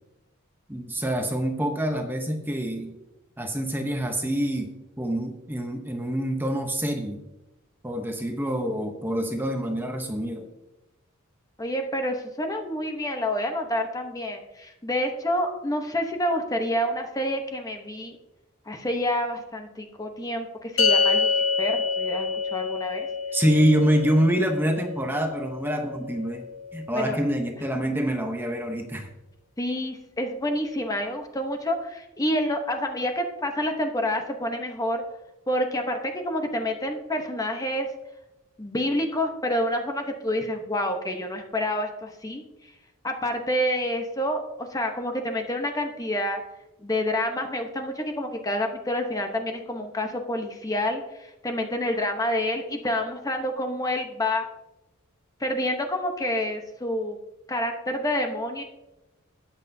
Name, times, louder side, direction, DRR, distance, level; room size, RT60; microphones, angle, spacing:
voice 1, 0.7-2.9 3.4-4.7 5.0-7.2 7.8-10.5 23.3-26.4 26.7-29.1, equal, 10° right, 4 dB, 0.8 m, -26 dB
voice 2, 11.6-18.2 18.7-21.3 21.6-23.1 26.9-27.2 29.6-35.0 35.5-37.9 38.6-42.4 43.0-46.4 46.8-54.4 55.4-57.2 57.5-58.6, left 1 dB, 15° left, 4 dB, 0.9 m, -28 dB
sound 1, 20.8-27.3, left 5 dB, 65° left, 1.5 m, -27 dB
13.0 x 9.0 x 2.7 m, 0.96 s
head